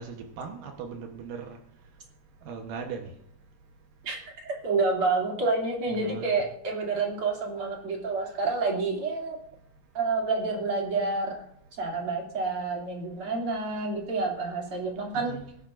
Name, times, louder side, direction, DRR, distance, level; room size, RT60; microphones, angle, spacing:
voice 1, 0.0-1.6 2.4-3.1 5.9-6.3 15.1-15.4, right 5 dB, 90° right, 3 dB, 1.8 m, -38 dB
voice 2, 4.0-9.4 9.9-11.4 11.8-15.3, right 3 dB, 35° right, 0 dB, 2.8 m, -29 dB
20.5 x 10.5 x 2.6 m, 0.68 s
omnidirectional pair, 5.6 m